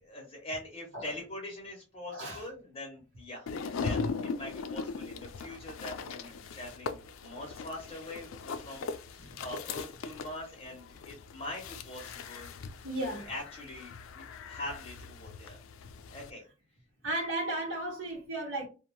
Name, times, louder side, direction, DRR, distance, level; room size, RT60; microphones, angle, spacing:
voice 1, 0.0-12.5 13.0-15.6 16.1-16.4, left 1 dB, 30° left, 0.8 m, -43 dB
voice 2, 2.1-2.4 12.8-13.3 17.0-18.7, right 1 dB, 70° right, 0.9 m, -34 dB
sound 1, 3.5-16.3, left 4 dB, 85° left, 0.4 m, -40 dB
2.7 x 2.1 x 2.8 m
head